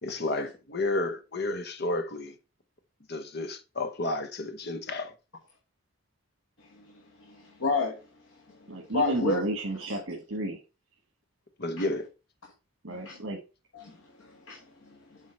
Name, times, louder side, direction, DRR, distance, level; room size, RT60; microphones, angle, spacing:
voice 1, 0.0-2.3 3.1-5.1 11.6-12.1, left 2 dB, 55° left, 0.9 m, -31 dB
voice 2, 7.2-8.0 8.5-9.4 12.9-13.2 13.7-15.2, left 3 dB, 80° left, 1.3 m, -32 dB
voice 3, 8.7-10.6 12.8-13.4, right 1 dB, 85° right, 1.4 m, -32 dB
7.3 x 3.9 x 4.3 m
head